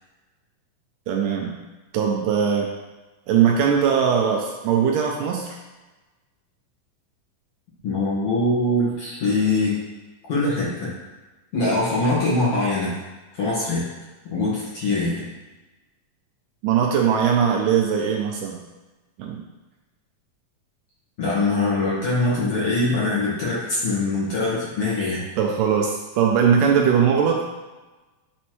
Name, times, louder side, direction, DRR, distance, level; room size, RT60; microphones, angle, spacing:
voice 1, 1.1-1.6 1.9-2.7 3.3-5.6 16.6-18.6 19.2-19.4 25.4-27.4, right 7 dB, 80° right, 0 dB, 2.1 m, -20 dB
voice 2, 7.8-9.8 10.3-10.9 11.5-13.0 13.4-13.8 14.3-15.2 21.2-25.2, left 2 dB, 50° left, -8 dB, 2.1 m, -23 dB
9.0 x 4.2 x 3.1 m, 1.2 s
omnidirectional pair, 4.1 m